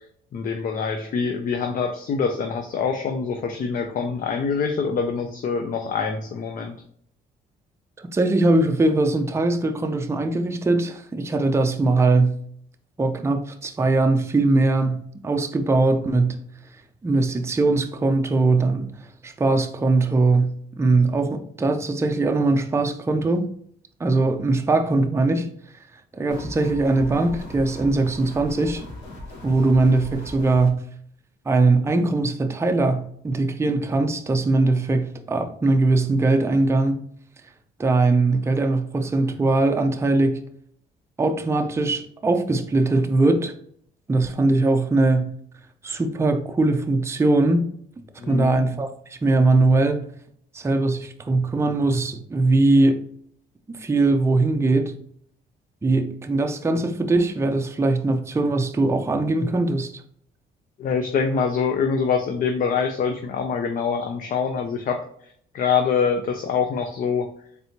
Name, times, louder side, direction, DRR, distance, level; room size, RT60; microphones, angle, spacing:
voice 1, 0.3-6.8 48.2-48.6 60.8-65.0 65.5-67.3, left 6 dB, 50° left, 0.5 m, -25 dB
voice 2, 8.0-12.4 13.0-16.4 17.0-18.9 19.2-23.5 24.0-25.5 26.1-28.8 29.4-30.8 31.5-37.0 37.8-40.4 41.2-43.5 44.1-45.3 45.8-47.7 48.3-48.9 49.2-50.0 50.5-53.0 53.7-54.9 55.8-59.9, right 2 dB, 15° right, 0.4 m, -21 dB
sound 1, 26.3-30.7, left 1 dB, 75° left, 1.5 m, -38 dB
4.2 x 3.3 x 2.8 m
cardioid pair, 95°, 18 cm